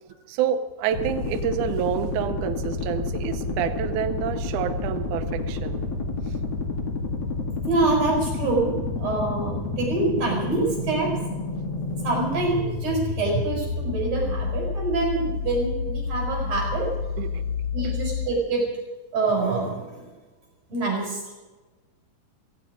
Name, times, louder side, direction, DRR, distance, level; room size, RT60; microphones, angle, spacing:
voice 1, 0.3-5.8 17.2-17.4 17.8-17.9, right 9 dB, 75° right, 7 dB, 1.8 m, -28 dB
sound 1, 0.9-18.3, left 3 dB, 45° left, 2.3 m, -29 dB
voice 2, 7.7-11.1 12.0-16.9 17.7-18.6 19.1-19.8 20.7-21.4, right 3 dB, 40° right, -1 dB, 7.0 m, -25 dB
17.5 x 15.5 x 5.1 m, 1.2 s
omnidirectional pair, 4.6 m